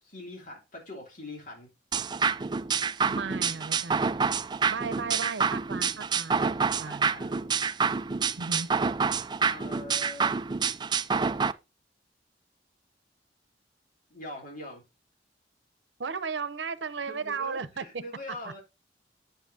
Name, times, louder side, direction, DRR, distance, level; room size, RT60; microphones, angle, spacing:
voice 1, 0.0-1.7 6.3-7.5 9.5-10.5 14.1-14.8 17.1-18.6, left 1 dB, 50° left, 2.9 m, -43 dB
sound 1, 1.9-11.5, right 5 dB, 25° right, 0.4 m, -27 dB
voice 2, 3.1-4.2 4.7-7.1 8.4-8.7 16.0-18.0, right 5 dB, 80° right, 0.8 m, -35 dB
9.4 x 7.0 x 2.7 m
head